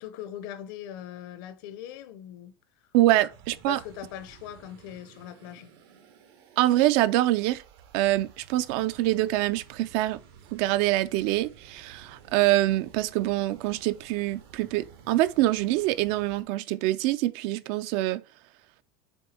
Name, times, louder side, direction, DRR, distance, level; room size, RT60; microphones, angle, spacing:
voice 1, 0.0-2.6 3.1-3.2 3.7-5.7, left 11 dB, 55° left, 0.7 m, -40 dB
voice 2, 2.9-3.8 6.6-7.6 7.9-10.2 10.5-18.2, right 16 dB, 45° right, 0.4 m, -25 dB
sound 1, 3.3-16.4, right 8 dB, 90° right, 1.9 m, -53 dB
7.1 x 3.5 x 4.3 m
supercardioid pair, 175°, 13 cm